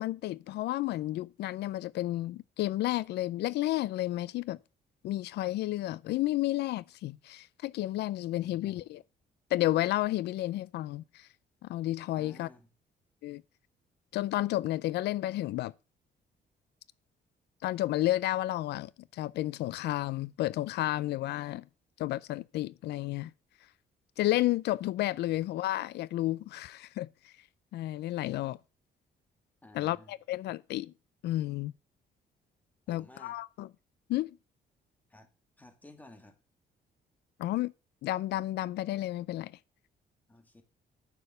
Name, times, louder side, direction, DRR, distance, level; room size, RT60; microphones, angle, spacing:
voice 1, 0.0-4.6 5.0-9.0 9.5-11.3 11.7-12.5 13.2-13.4 14.1-15.7 17.6-21.6 22.0-23.3 24.2-27.3 27.7-28.6 29.7-30.9 31.2-31.7 32.9-33.7 34.1-34.4 37.4-37.7 38.0-39.5, left 15 dB, 90° left, 0.5 m, -31 dB
voice 2, 8.4-8.9 12.1-12.7 29.6-30.2 32.9-33.4 35.1-35.3 35.6-36.4 40.3-40.6, left 2 dB, 10° left, 1.7 m, -54 dB
9.8 x 6.9 x 6.6 m
cardioid pair, 180°, 17 cm